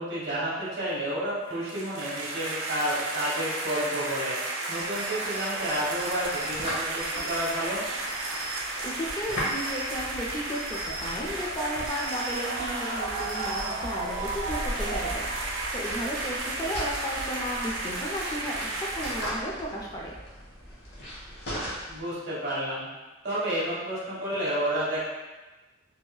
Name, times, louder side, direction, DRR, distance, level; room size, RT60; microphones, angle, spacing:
voice 1, 0.0-4.4 4.7-7.8 17.9-18.1 21.9-22.9 23.2-25.0, right 1 dB, 55° right, -7 dB, 1.1 m, -30 dB
sound 1, 1.4-19.3, right 2 dB, 90° right, 0.5 m, -33 dB
sound 2, 4.7-14.3, right 2 dB, 20° right, 1.3 m, -44 dB
sound 3, 5.6-22.0, equal, 60° left, 0.8 m, -39 dB
voice 2, 8.8-20.1, equal, 20° left, -2 dB, 0.3 m, -34 dB
3.0 x 2.7 x 2.2 m, 1.1 s
head